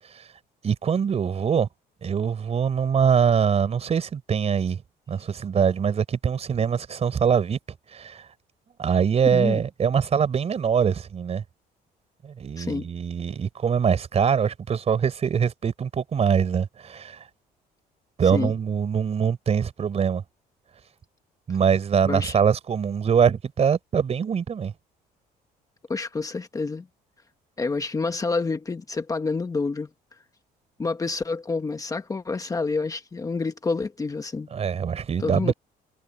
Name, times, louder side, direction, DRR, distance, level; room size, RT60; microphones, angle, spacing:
voice 1, 0.6-1.7 2.0-4.8 5.1-7.6 7.9-8.3 8.8-11.4 12.2-17.3 18.2-20.2 21.5-24.7 34.5-35.5, right 7 dB, 40° right, 4.2 m, -23 dB
voice 2, 9.3-9.6 12.6-12.9 18.3-18.5 22.0-22.3 25.9-26.9 27.6-29.9 30.8-34.5 35.2-35.5, left 4 dB, 20° left, 1.1 m, -28 dB
cardioid pair, 125°, 17 cm